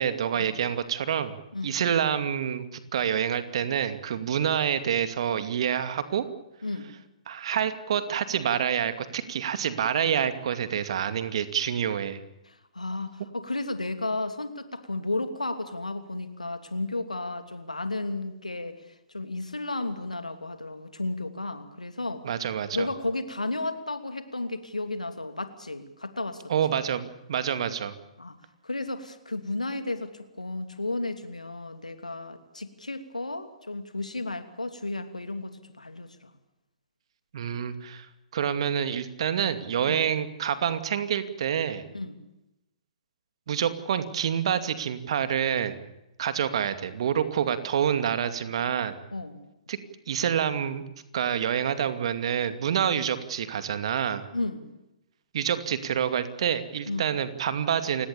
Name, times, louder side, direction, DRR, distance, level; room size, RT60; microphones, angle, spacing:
voice 1, 0.0-1.4 1.6-6.3 7.3-12.2 22.2-22.9 26.5-28.0 37.3-41.9 43.5-45.8 46.2-49.0 49.7-49.8 50.1-50.8 51.1-54.3 55.3-58.1, right 8 dB, 50° right, 10 dB, 2.5 m, -27 dB
voice 2, 12.5-22.3 22.7-26.5 28.2-28.4 28.6-36.3 39.9-40.0 41.9-42.2 49.1-49.4 54.3-54.7 56.9-57.1, left 2 dB, 85° left, 9 dB, 2.9 m, -33 dB
29.5 x 18.0 x 7.0 m, 0.91 s
figure-of-eight pair, 125°, 4 cm